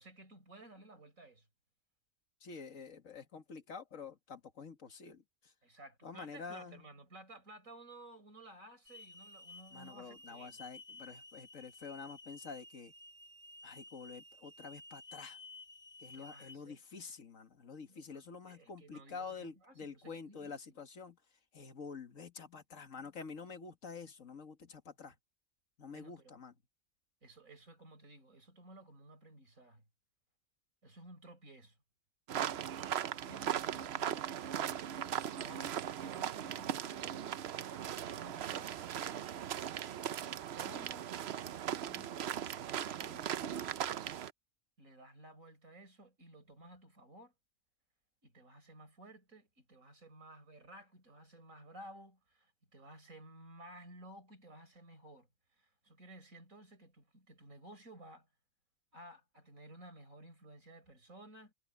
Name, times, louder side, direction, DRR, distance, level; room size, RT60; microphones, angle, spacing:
voice 1, 0.0-1.5 5.6-10.6 16.1-16.8 17.9-20.8 25.9-26.4 27.2-29.8 30.8-31.8 32.9-34.5 35.3-37.4 37.8-38.7 40.6-41.1 44.8-47.3 48.2-55.3 55.6-58.3 58.9-61.5, right 1 dB, 85° right, 6.1 m, -55 dB
voice 2, 2.4-5.2 6.0-6.8 9.7-12.9 13.6-15.4 16.0-21.2 21.5-25.1 25.8-26.5, left 5 dB, 75° left, 2.0 m, -48 dB
Hiss / Alarm, 8.9-16.6, left 2 dB, 35° left, 4.0 m, -54 dB
sound 1, 32.3-44.3, right 10 dB, 60° right, 0.8 m, -38 dB
omnidirectional pair, 1.4 m